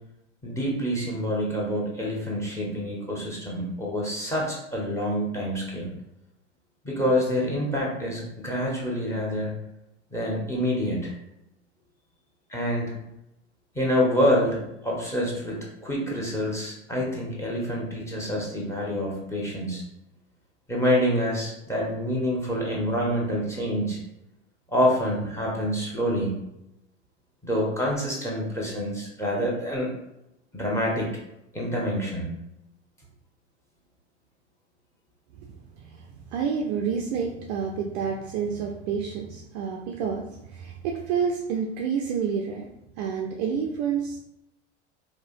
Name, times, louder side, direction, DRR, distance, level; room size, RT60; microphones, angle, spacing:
voice 1, 0.4-5.9 6.8-9.5 10.1-11.1 12.5-12.9 13.7-19.8 20.7-24.0 24.7-26.3 27.4-29.9 30.5-31.2 31.5-32.3, equal, 10° left, -3 dB, 1.0 m, -27 dB
voice 2, 35.8-42.7 43.0-44.2, right 6 dB, 40° right, 0 dB, 0.4 m, -29 dB
4.8 x 2.1 x 2.5 m, 0.85 s
figure-of-eight pair, 80°, 35 cm